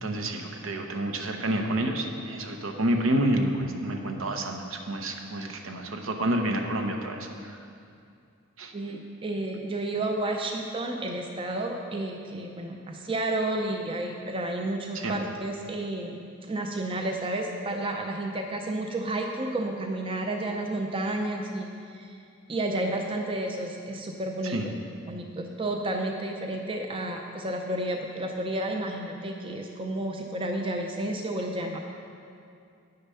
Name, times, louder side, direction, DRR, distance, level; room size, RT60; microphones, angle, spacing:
voice 1, 0.0-7.6 8.6-8.7 14.9-15.1 24.4-24.7, right 1 dB, 70° right, 4 dB, 0.8 m, -29 dB
voice 2, 8.7-16.2 16.5-22.1 22.5-24.6 25.1-31.8, right 1 dB, 25° right, 2 dB, 0.5 m, -31 dB
9.4 x 6.6 x 5.6 m, 2.4 s
head